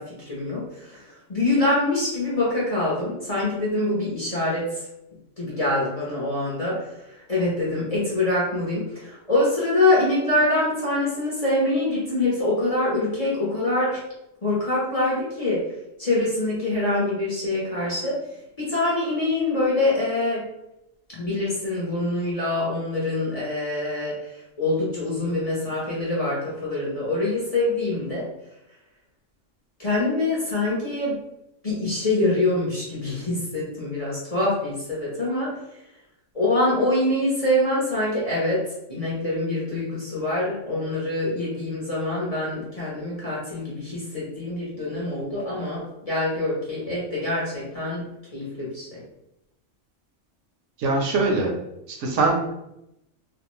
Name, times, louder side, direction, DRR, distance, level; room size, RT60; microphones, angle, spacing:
voice 1, 0.0-4.9 5.4-14.0 14.4-15.7 16.0-18.2 18.6-20.5 21.1-28.3 29.8-31.2 31.6-35.6 36.3-48.1 48.3-49.0, left 2 dB, 40° left, -7 dB, 0.6 m, -25 dB
voice 2, 50.8-51.5 51.9-52.3, right 3 dB, 75° right, 0 dB, 0.9 m, -22 dB
2.5 x 2.0 x 3.0 m, 0.85 s
omnidirectional pair, 1.3 m